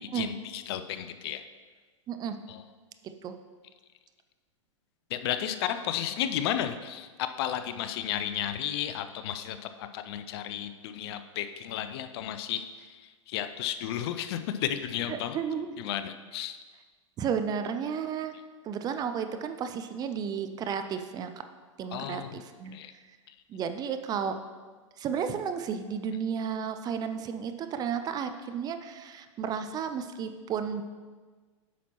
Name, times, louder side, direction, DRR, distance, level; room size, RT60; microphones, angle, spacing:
voice 1, 0.1-1.4 2.5-2.6 5.1-13.0 13.3-15.4 15.8-16.6 21.9-22.4 22.7-22.9, left 10 dB, 50° left, 9 dB, 0.5 m, -33 dB
voice 2, 3.0-3.3 15.1-15.8 17.2-18.3 18.6-21.3 21.8-22.8 23.5-24.3 25.0-30.8, right 7 dB, 25° right, 8 dB, 0.4 m, -33 dB
8.3 x 5.9 x 3.0 m, 1.4 s
hypercardioid pair, 110°, 17 cm